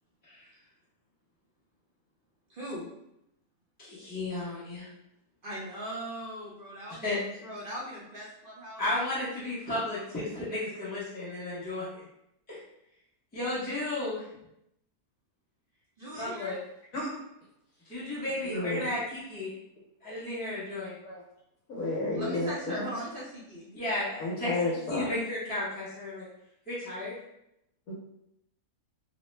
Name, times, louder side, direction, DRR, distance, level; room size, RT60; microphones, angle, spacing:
voice 1, 2.5-2.9 5.4-7.1 7.4-8.9 16.0-16.6 22.1-23.7, equal, 50° right, -6 dB, 0.7 m, -39 dB
voice 2, 3.8-4.9 7.0-7.2 8.8-12.0 12.5-12.6 13.3-14.2 16.1-16.6 17.9-19.5 20.0-20.9 23.7-24.5 24.9-26.3 26.7-27.1, left 2 dB, 10° left, -10 dB, 0.6 m, -33 dB
voice 3, 18.5-18.9 21.0-21.2 21.7-22.9 24.2-25.1 27.9-28.0, left 2 dB, 65° left, -5 dB, 1.0 m, -31 dB
3.0 x 2.0 x 3.1 m, 0.81 s
omnidirectional pair, 1.6 m